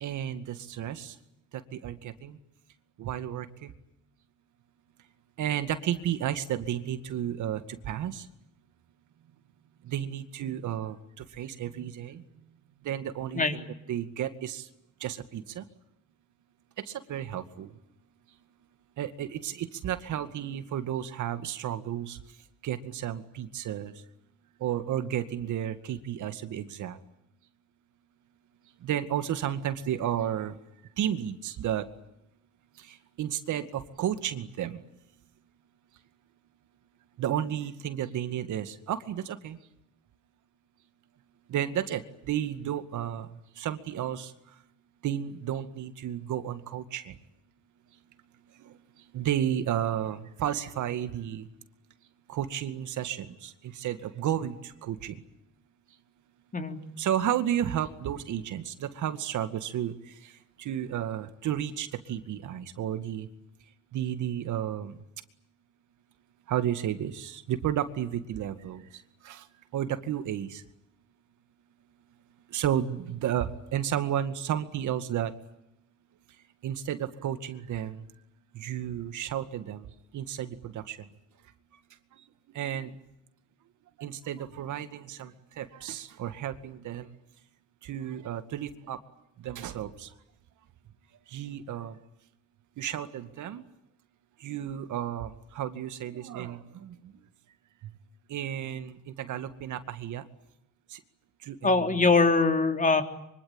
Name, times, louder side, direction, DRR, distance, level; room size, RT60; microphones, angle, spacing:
voice 1, 0.0-1.1 1.7-2.4 3.0-3.7 5.4-7.6 7.9-8.2 9.9-11.0 11.4-12.2 12.9-14.6 15.0-15.6 17.1-17.7 19.0-22.2 22.6-23.9 24.6-27.0 28.8-30.6 31.0-31.8 33.2-34.8 37.2-39.6 41.5-43.3 43.6-44.3 45.0-47.1 49.1-51.4 52.3-55.2 57.0-59.9 60.6-63.3 63.9-65.0 66.5-68.8 69.3-69.4 69.7-70.6 72.5-75.3 76.6-78.0 78.6-79.8 80.1-81.0 82.6-82.9 84.0-85.3 85.6-87.1 87.8-89.0 89.4-90.1 91.3-91.9 92.8-93.6 94.4-96.9 98.3-100.2 100.9-101.0 101.5-102.0, right 10 dB, 75° right, 10 dB, 2.2 m, -32 dB
voice 2, 101.6-103.0, left 3 dB, 25° left, 6 dB, 3.7 m, -22 dB
25.0 x 24.5 x 9.0 m, 0.84 s
cardioid pair, 90°, 30 cm